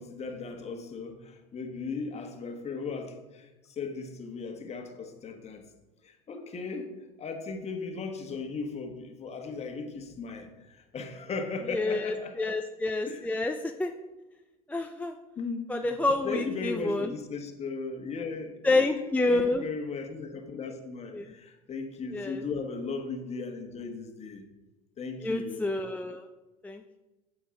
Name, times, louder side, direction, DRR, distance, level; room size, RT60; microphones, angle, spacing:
voice 1, 0.0-5.7 6.0-6.9 7.2-12.5 13.1-13.2 15.4-24.4 25.0-25.6, left 4 dB, 30° left, 5 dB, 1.4 m, -37 dB
voice 2, 11.7-13.9 14.7-15.1 15.7-17.1 18.6-19.6 21.1-21.3 22.1-22.4 25.2-26.3 26.6-27.0, left 2 dB, 5° left, 5 dB, 0.4 m, -28 dB
9.3 x 7.0 x 3.8 m, 1.1 s
supercardioid pair, 95°, 20 cm